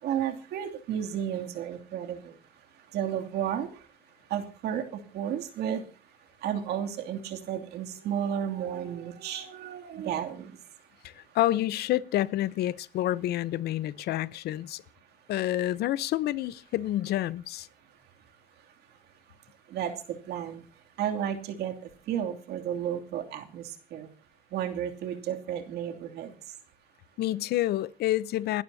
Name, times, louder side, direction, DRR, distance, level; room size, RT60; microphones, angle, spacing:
voice 1, 0.0-2.3 2.9-3.7 4.3-5.8 6.4-10.5 19.7-20.6 21.0-21.7 22.1-24.1 24.5-26.3, right 9 dB, 75° right, 2.8 m, -32 dB
voice 2, 11.0-14.8 15.3-17.7 27.2-28.6, left 14 dB, 75° left, 0.8 m, -28 dB
28.5 x 12.0 x 2.8 m
cardioid pair, 110°, 17 cm